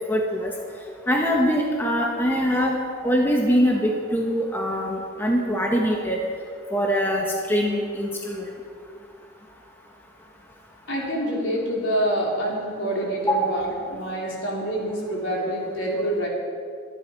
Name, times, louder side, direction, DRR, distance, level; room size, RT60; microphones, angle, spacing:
voice 1, 0.1-0.5 1.1-2.8 3.0-6.2 6.7-8.5 13.3-13.6, equal, 10° left, -1 dB, 1.2 m, -23 dB
voice 2, 10.9-16.3, right 1 dB, 65° left, -3 dB, 3.7 m, -26 dB
23.5 x 10.5 x 4.7 m, 2.3 s
head